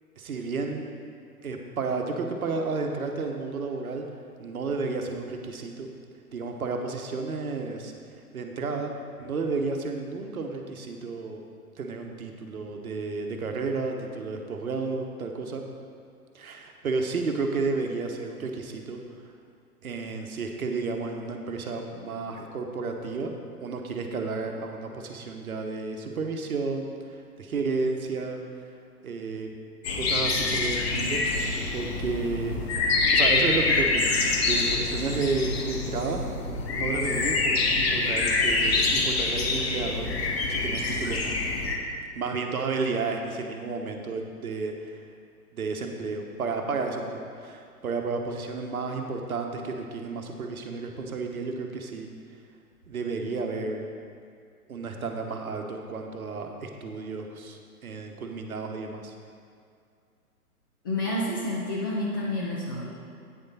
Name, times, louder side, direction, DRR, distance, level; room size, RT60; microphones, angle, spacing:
voice 1, 0.2-1.0 1.4-4.1 4.4-5.9 6.3-7.9 8.3-8.9 9.2-11.4 11.8-15.6 16.3-19.0 19.8-23.3 23.6-28.4 29.0-29.5 29.9-31.2 31.7-32.6 33.1-34.1 34.4-36.2 36.7-40.1 40.5-41.3 42.1-45.0 45.5-52.1 52.9-53.9 54.7-59.1, right 4 dB, 65° right, 3 dB, 1.1 m, -32 dB
sound 1, 29.8-41.8, left 3 dB, 40° left, 1.0 m, -26 dB
voice 2, 60.8-62.9, left 1 dB, 15° left, -6 dB, 0.5 m, -29 dB
9.0 x 6.6 x 4.1 m, 2.3 s
figure-of-eight pair, 120°, 46 cm